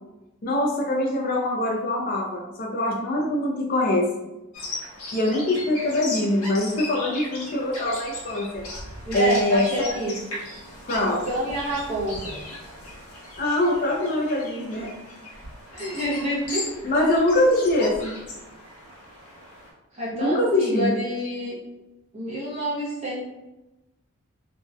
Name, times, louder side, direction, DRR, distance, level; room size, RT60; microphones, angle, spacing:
voice 1, 0.4-4.1 5.1-8.6 9.1-9.7 10.9-11.3 13.4-14.9 16.8-18.2 20.1-20.9, left 1 dB, 40° left, 0 dB, 0.4 m, -23 dB
Bird vocalization bird call bird song, 4.5-19.7, left 2 dB, 85° left, 0.8 m, -38 dB
voice 2, 9.1-10.2 11.0-12.4 15.7-16.7 19.9-21.5 22.1-23.2, right 1 dB, 30° right, -6 dB, 0.5 m, -28 dB
2.6 x 2.0 x 2.3 m, 1.0 s
head